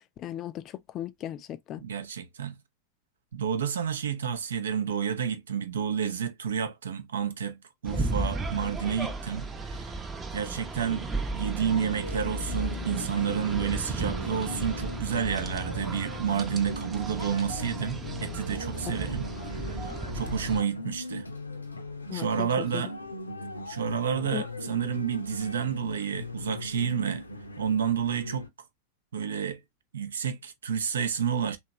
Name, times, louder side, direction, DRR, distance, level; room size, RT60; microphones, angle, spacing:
voice 1, 0.2-1.8 7.9-8.0 22.1-22.9 24.3-24.4, left 11 dB, 35° left, 0.4 m, -37 dB
voice 2, 1.8-2.6 3.3-9.9 10.3-11.1 11.3-21.3 22.1-22.9 23.7-27.3 27.6-28.5 29.1-29.6 29.9-31.6, right 7 dB, 65° right, 0.6 m, -30 dB
sound 1, 7.8-20.6, right 3 dB, 15° right, 0.7 m, -35 dB
sound 2, 11.6-28.5, left 2 dB, 80° left, 0.6 m, -39 dB
3.3 x 2.9 x 2.9 m
figure-of-eight pair, 90°, 0 cm